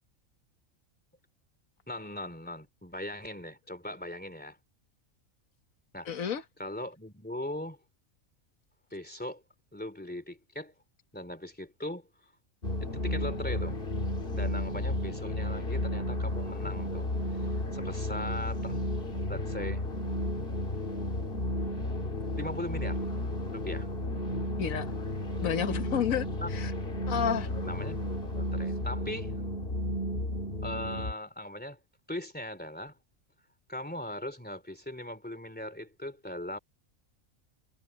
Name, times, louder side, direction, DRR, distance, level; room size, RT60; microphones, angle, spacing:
voice 1, 1.9-4.6 5.9-6.3 6.6-7.8 8.9-9.4 9.7-10.7 11.1-12.3 12.9-13.8 14.3-18.8 19.3-19.9 22.4-23.1 23.5-23.9 26.4-26.5 27.5-28.0 28.3-29.4 30.6-31.8 32.1-33.0 33.7-36.6, left 1 dB, 5° left, 2.8 m, -39 dB
voice 2, 6.1-6.4 24.6-24.9 25.4-26.3 26.5-26.7 27.1-27.5, left 8 dB, 75° left, 1.7 m, -30 dB
sound 1, 12.6-31.1, left 1 dB, 40° left, 2.4 m, -33 dB
omnidirectional pair, 1.4 m